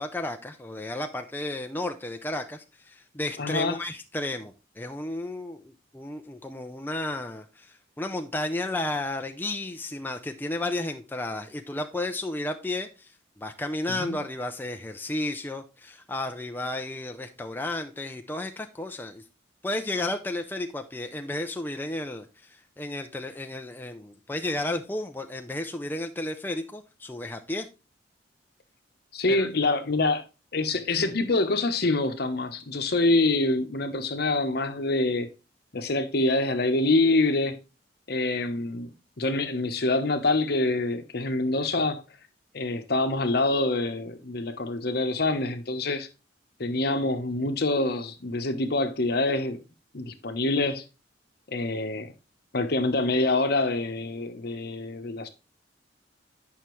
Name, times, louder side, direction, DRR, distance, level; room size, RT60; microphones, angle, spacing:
voice 1, 0.0-13.1 13.4-19.2 19.6-27.7 29.3-29.5, left 2 dB, 10° left, 0.5 m, -33 dB
voice 2, 3.4-3.8 14.0-14.2 29.1-30.2 30.5-35.3 35.7-37.6 38.1-42.0 42.5-46.1 46.6-49.6 49.9-50.8 51.5-52.1 52.5-55.3, left 2 dB, 60° left, 1.0 m, -26 dB
8.8 x 5.6 x 3.1 m
head